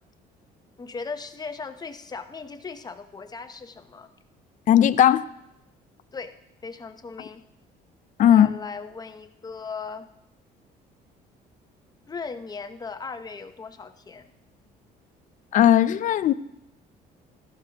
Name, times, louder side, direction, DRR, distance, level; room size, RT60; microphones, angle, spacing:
voice 1, 0.8-4.1 6.1-6.3 6.6-7.4 8.3-10.1 12.1-14.3, left 5 dB, 25° left, 9 dB, 0.8 m, -37 dB
voice 2, 4.7-5.2 8.2-8.5 15.5-16.3, left 10 dB, 50° left, 15 dB, 0.4 m, -17 dB
13.5 x 11.5 x 2.9 m, 0.86 s
cardioid pair, 110°, 17 cm